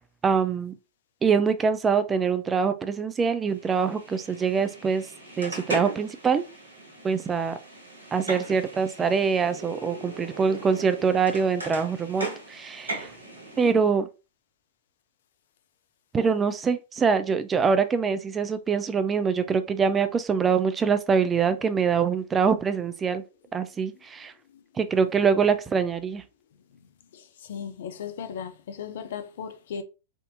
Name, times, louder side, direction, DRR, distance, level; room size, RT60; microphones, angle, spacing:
voice 1, 0.2-0.7 1.2-5.1 5.4-6.4 7.0-7.6 8.1-13.1 13.6-14.1 16.1-23.2 23.5-24.3 24.8-26.2, right 6 dB, 20° right, 0.4 m, -24 dB
sound 1, 3.5-13.7, right 2 dB, 85° right, 1.3 m, -38 dB
voice 2, 27.1-29.8, left 7 dB, 60° left, 0.5 m, -36 dB
3.5 x 2.7 x 2.5 m
figure-of-eight pair, 100°, 0 cm